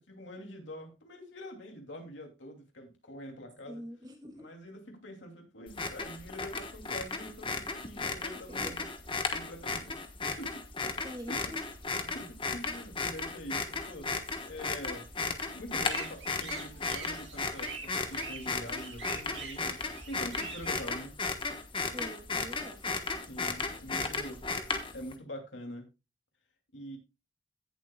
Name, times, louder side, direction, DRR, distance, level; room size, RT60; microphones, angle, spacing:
voice 1, 0.1-3.8 4.4-8.9 9.3-10.9 11.4-11.5 12.0-14.1 14.4-15.0 15.5-19.8 20.1-21.1 23.3-24.4 24.9-25.9 26.7-27.0, equal, 70° left, 3 dB, 2.7 m, -45 dB
voice 2, 3.6-4.5 7.9-8.1 8.5-8.9 11.0-11.6 21.9-22.8, equal, 20° right, 3 dB, 2.4 m, -44 dB
sound 1, 5.7-25.1, left 4 dB, 25° left, 1.2 m, -35 dB
sound 2, 15.9-20.8, right 5 dB, 65° right, 2.6 m, -45 dB
17.0 x 7.4 x 2.3 m, 0.28 s
head